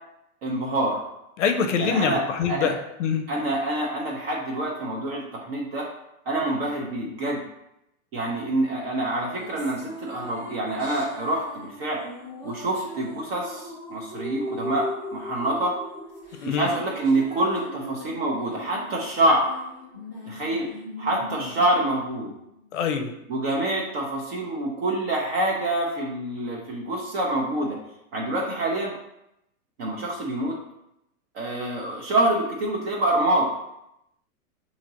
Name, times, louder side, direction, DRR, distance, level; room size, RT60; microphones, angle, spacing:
voice 1, 0.4-1.0 1.8-2.2 2.5-2.7 3.3-5.9 6.3-7.4 8.1-12.0 12.4-15.8 16.4-19.5 20.3-20.7 21.0-22.3 23.3-27.8 28.1-28.9 29.8-30.5 31.3-33.5, right 1 dB, 45° right, -2 dB, 0.7 m, -26 dB
voice 2, 1.4-3.2 16.4-16.7 22.7-23.1, left 6 dB, 55° left, 6 dB, 0.6 m, -24 dB
sound 1, 9.0-22.7, equal, 10° right, 0.4 m, -39 dB
5.0 x 2.9 x 2.8 m, 0.84 s
hypercardioid pair, 155°, 44 cm